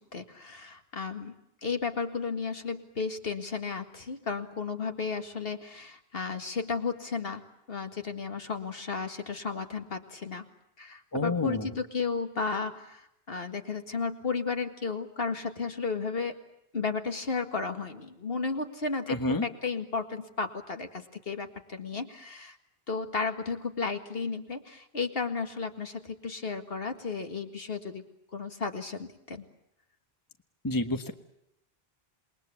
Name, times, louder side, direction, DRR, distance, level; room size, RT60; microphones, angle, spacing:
voice 1, 0.1-1.3 1.6-7.4 7.7-10.5 10.8-16.4 16.7-22.6 22.9-28.0 28.3-29.5, left 4 dB, 65° left, 6 dB, 2.1 m, -33 dB
voice 2, 11.1-11.7 19.1-19.4 30.6-31.1, left 2 dB, 20° left, 7 dB, 1.4 m, -29 dB
28.0 x 21.5 x 8.4 m, 0.82 s
omnidirectional pair, 1.1 m